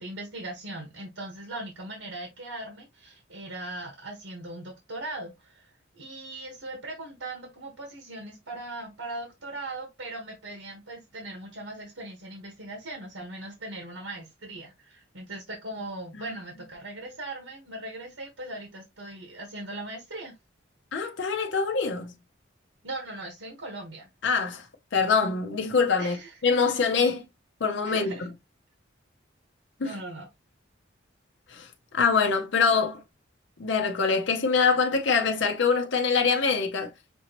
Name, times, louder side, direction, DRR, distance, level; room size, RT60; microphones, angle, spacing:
voice 1, 0.0-20.3 22.8-24.1 26.0-26.3 27.8-28.3 29.8-30.3, right 2 dB, 85° right, 1.4 m, -39 dB
voice 2, 20.9-22.1 24.2-24.6 24.9-26.2 26.4-27.2 27.6-28.3 29.8-29.9 31.5-31.7 31.9-33.0 33.6-36.9, left 5 dB, 70° left, 0.6 m, -24 dB
6.0 x 2.9 x 2.9 m
head